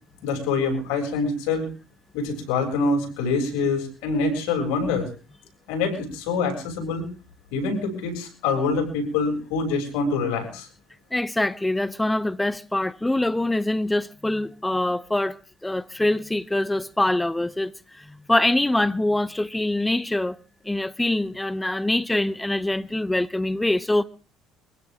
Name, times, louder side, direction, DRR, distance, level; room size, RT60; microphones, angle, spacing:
voice 1, 0.2-1.7 2.1-5.1 5.7-7.0 7.5-10.7, left 4 dB, 85° left, 7.0 m, -25 dB
voice 2, 11.1-15.4 15.6-20.4 20.6-24.0, left 1 dB, 10° left, 0.8 m, -24 dB
24.0 x 16.0 x 3.7 m
supercardioid pair, 95°, 0 cm